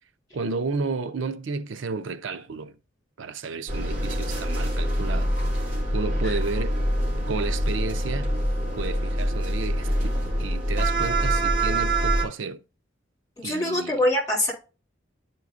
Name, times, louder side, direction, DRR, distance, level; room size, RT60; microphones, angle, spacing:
voice 1, 0.3-2.8 3.2-5.3 5.6-6.8 7.3-8.3 8.8-10.1 10.4-12.6 13.4-14.0, right 4 dB, 80° right, 0.5 m, -32 dB
sound 1, 3.7-12.2, right 1 dB, 45° right, 2.2 m, -25 dB
voice 2, 13.4-14.5, left 1 dB, 20° left, 2.9 m, -24 dB
12.0 x 4.6 x 2.4 m
head